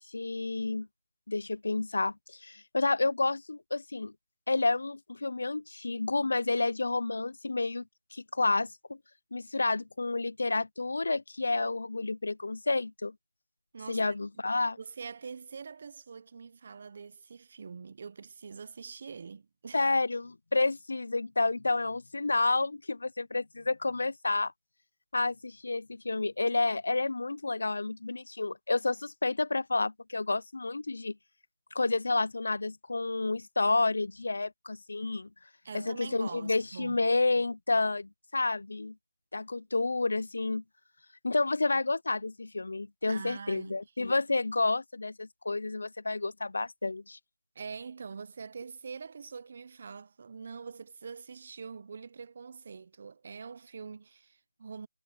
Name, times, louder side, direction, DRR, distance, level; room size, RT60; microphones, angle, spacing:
voice 1, 0.1-0.9 1.3-4.1 4.5-7.8 8.1-9.0 9.3-13.1 13.9-14.8 19.7-24.5 25.1-31.2 31.7-35.3 35.7-38.9 39.3-40.6 41.2-47.2, left 3 dB, 60° left, 0.3 m, -30 dB
voice 2, 13.7-14.2 14.8-19.9 35.6-37.1 43.1-43.8 47.5-54.9, right 5 dB, 35° right, 0.7 m, -44 dB
figure-of-eight pair, 170°, 0 cm